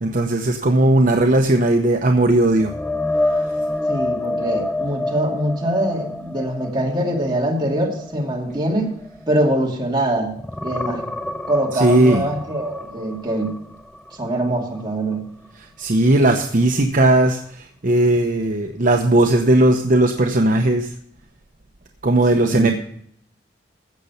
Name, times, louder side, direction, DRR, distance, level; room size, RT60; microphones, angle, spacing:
voice 1, 0.0-2.7 3.3-3.4 11.7-12.2 15.8-20.9 22.0-22.7, right 1 dB, 50° right, 3 dB, 0.8 m, -17 dB
sound 1, 2.6-10.0 10.3-14.2 14.6-14.8 18.2-18.3, left 2 dB, 5° left, 0.4 m, -28 dB
voice 2, 3.9-8.9 9.3-10.4 10.6-11.0 11.5-13.6 14.1-15.2 22.3-22.7, right 1 dB, 25° right, -1 dB, 2.5 m, -23 dB
15.5 x 6.8 x 5.6 m, 0.67 s
head